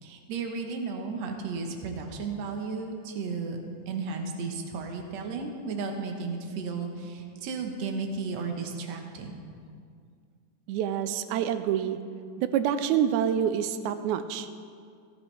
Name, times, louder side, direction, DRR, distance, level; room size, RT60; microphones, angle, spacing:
voice 1, 0.0-3.6 3.9-9.4, right 4 dB, 60° right, 3 dB, 2.0 m, -34 dB
voice 2, 10.7-12.0 12.4-14.5, right 9 dB, 80° right, 10 dB, 1.8 m, -27 dB
15.5 x 13.5 x 3.3 m, 2.2 s
omnidirectional pair, 3.8 m